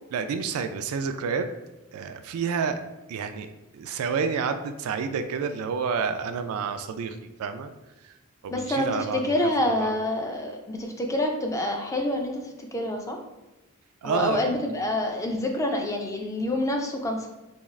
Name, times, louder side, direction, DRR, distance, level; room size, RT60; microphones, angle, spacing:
voice 1, 0.1-1.5 1.9-2.8 3.1-7.7 8.0-8.2 8.4-9.3 9.6-9.9 14.0-14.7, right 5 dB, 70° right, 9 dB, 0.3 m, -29 dB
voice 2, 8.5-13.2 14.0-17.3, left 1 dB, 15° left, 2 dB, 0.3 m, -27 dB
3.5 x 2.3 x 3.1 m, 1.0 s
head